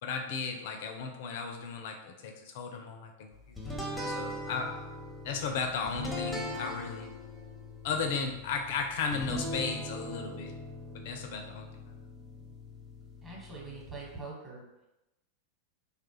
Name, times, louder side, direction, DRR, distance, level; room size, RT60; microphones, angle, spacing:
voice 1, 0.0-3.6 4.0-4.8 5.2-7.2 7.8-10.5 11.0-11.9, left 5 dB, 50° left, 5 dB, 0.4 m, -35 dB
sound 1, 3.6-14.2, left 1 dB, 5° left, 0.6 m, -40 dB
voice 2, 13.2-14.6, right 3 dB, 20° right, -4 dB, 1.1 m, -44 dB
3.2 x 2.4 x 2.9 m, 0.94 s
figure-of-eight pair, 90°, 0 cm